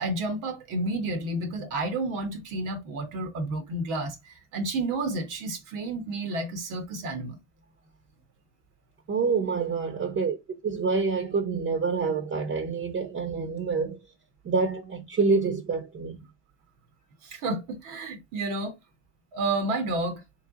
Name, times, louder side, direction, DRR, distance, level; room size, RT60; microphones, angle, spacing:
voice 1, 0.0-7.4 17.2-18.8 19.3-20.2, right 2 dB, 70° right, 1.3 m, -31 dB
voice 2, 9.1-10.4 10.6-14.0 14.4-16.3, right 4 dB, 40° right, 1.1 m, -27 dB
3.2 x 3.2 x 3.8 m
hypercardioid pair, 60°, 31 cm